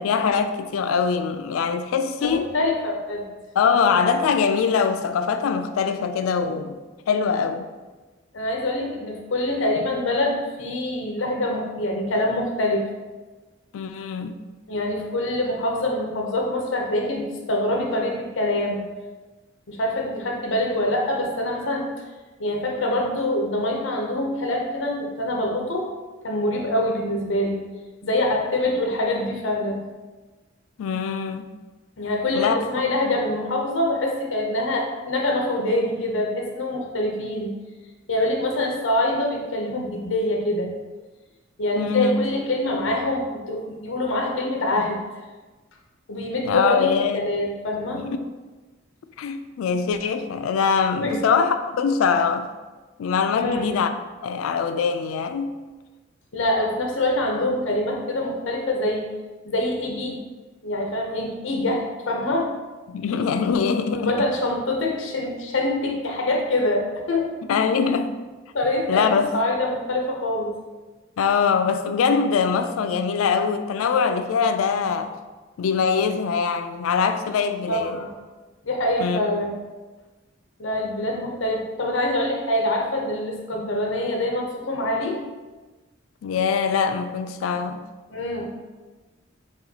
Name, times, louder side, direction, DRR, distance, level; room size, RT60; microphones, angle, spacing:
voice 1, 0.0-2.5 3.6-6.8 7.1-7.7 13.7-14.4 30.8-31.5 32.3-32.6 41.8-42.1 46.4-47.3 48.0-48.2 49.2-52.5 53.0-53.9 54.2-55.5 62.9-64.1 67.5-68.2 68.9-69.3 71.2-75.2 75.6-78.0 79.0-79.2 86.2-87.8, left 6 dB, 90° left, 8 dB, 0.3 m, -23 dB
voice 2, 2.2-3.3 8.3-12.9 14.7-18.8 19.7-21.9 22.4-25.9 26.2-27.6 28.0-29.8 32.0-37.5 38.1-40.7 41.6-45.0 46.1-48.1 51.0-51.2 53.3-53.7 56.3-59.1 59.4-60.2 60.6-62.5 63.9-67.3 68.5-70.5 77.7-78.1 78.6-79.5 80.6-85.2 88.1-88.5, left 1 dB, 70° left, 1 dB, 0.7 m, -25 dB
6.7 x 2.3 x 2.8 m, 1.3 s
head